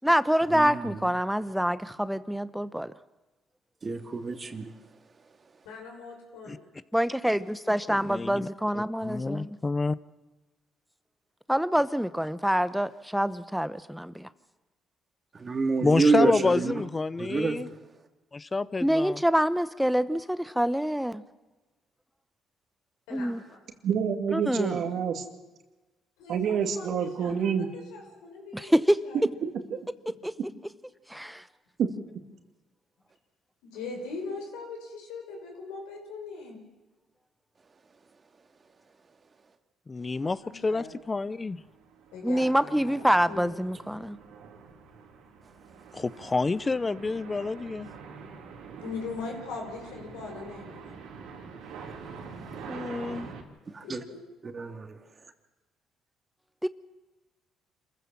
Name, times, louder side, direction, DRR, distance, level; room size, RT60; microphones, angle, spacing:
voice 1, 0.0-2.9 6.9-9.6 11.5-14.3 18.8-21.2 23.1-23.4 24.3-24.8 28.5-29.0 30.2-30.3 31.1-31.4 42.2-44.2 56.6-56.7, equal, 5° right, 15 dB, 0.8 m, -26 dB
voice 2, 0.5-0.9 3.8-4.7 15.4-16.7 17.2-17.6 53.7-54.0 54.5-54.7, right 4 dB, 35° right, 6 dB, 2.4 m, -27 dB
voice 3, 5.7-6.7 23.1-23.6 26.2-29.2 33.6-36.6 40.4-40.9 42.1-43.5 48.8-50.9 53.8-54.2, left 4 dB, 85° left, 1 dB, 5.6 m, -40 dB
voice 4, 8.0-8.5 8.7-10.0 15.8-17.7 18.3-19.2 39.9-41.6 45.9-47.9 52.7-53.3, left 3 dB, 25° left, 18 dB, 0.8 m, -28 dB
voice 5, 23.8-25.2 26.3-27.7 29.1-29.8 31.8-31.9, right 7 dB, 65° right, 6 dB, 2.4 m, -28 dB
sound 1, 40.4-40.6 41.1-53.4, right 5 dB, 80° right, 3.3 m, -45 dB
27.0 x 15.0 x 7.4 m, 1.2 s
supercardioid pair, 70°, 0 cm